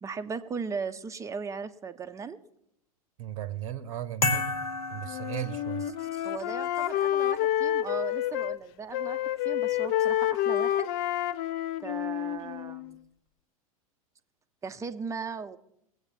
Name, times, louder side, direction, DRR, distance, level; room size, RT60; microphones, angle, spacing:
voice 1, 0.0-2.4 6.0-10.9 11.8-13.0 14.6-15.6, right 5 dB, 15° right, 9 dB, 0.7 m, -37 dB
voice 2, 3.2-4.5 4.9-5.8, right 12 dB, 60° right, 16 dB, 0.8 m, -36 dB
sound 1, 4.2-6.1, left 2 dB, 85° left, 1.5 m, -31 dB
Wind instrument woodwind instrument, 5.1-8.6 8.9-12.9, left 12 dB, 40° left, 0.5 m, -29 dB
20.0 x 8.2 x 4.5 m, 0.78 s
figure-of-eight pair, 90°, 19 cm